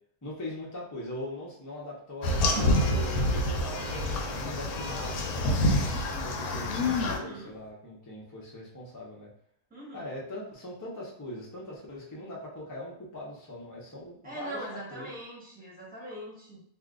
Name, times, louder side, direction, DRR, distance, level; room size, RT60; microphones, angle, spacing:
voice 1, 0.2-9.3 9.9-14.6 14.9-15.2, left 1 dB, 25° left, -4 dB, 0.4 m, -41 dB
sound 1, 2.2-7.2, left 1 dB, 75° left, 1.0 m, -27 dB
voice 2, 2.2-2.7 7.0-7.5 9.7-10.1 14.2-16.6, right 1 dB, 5° right, -6 dB, 1.0 m, -42 dB
sound 2, 2.5-7.7, right 6 dB, 65° right, 0.8 m, -43 dB
2.7 x 2.4 x 3.6 m, 0.65 s
omnidirectional pair, 1.7 m